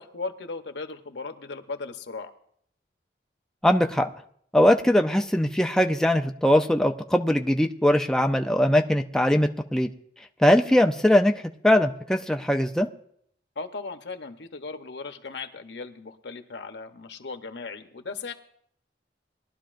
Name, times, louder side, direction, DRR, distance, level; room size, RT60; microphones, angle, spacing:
voice 1, 0.0-2.3 13.6-18.3, left 4 dB, 90° left, 7 dB, 0.9 m, -37 dB
voice 2, 3.6-4.1 4.5-9.9 10.4-11.3 11.6-12.9, left 1 dB, 5° left, 4 dB, 0.4 m, -21 dB
20.5 x 11.5 x 2.5 m, 0.67 s
head